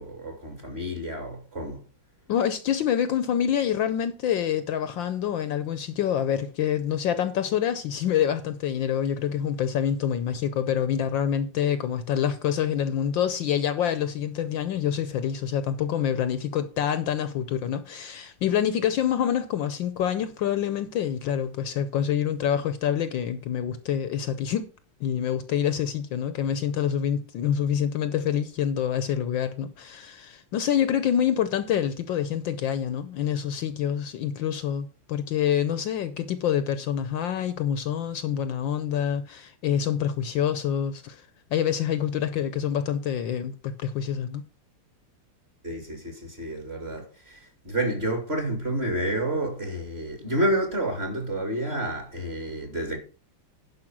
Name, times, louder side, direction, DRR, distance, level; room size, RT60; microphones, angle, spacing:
voice 1, 0.0-1.8 45.6-53.0, right 1 dB, 30° right, 2.6 m, -29 dB
voice 2, 2.3-24.7 25.0-41.2 41.5-44.4, left 9 dB, 70° left, 1.3 m, -26 dB
11.0 x 5.2 x 5.9 m
omnidirectional pair, 2.4 m